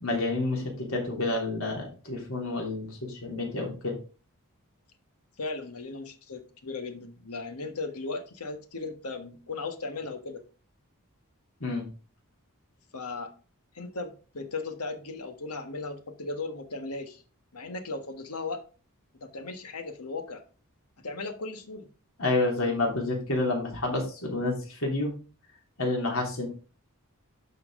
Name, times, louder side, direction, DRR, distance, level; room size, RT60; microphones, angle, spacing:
voice 1, 0.0-4.0 11.6-11.9 22.2-25.1 25.8-26.5, left 2 dB, 65° left, 3.4 m, -29 dB
voice 2, 5.4-10.4 12.9-13.3 13.7-17.2 17.5-18.6 19.1-20.4 21.0-21.9, left 3 dB, 90° left, 1.4 m, -37 dB
11.5 x 5.8 x 3.7 m
head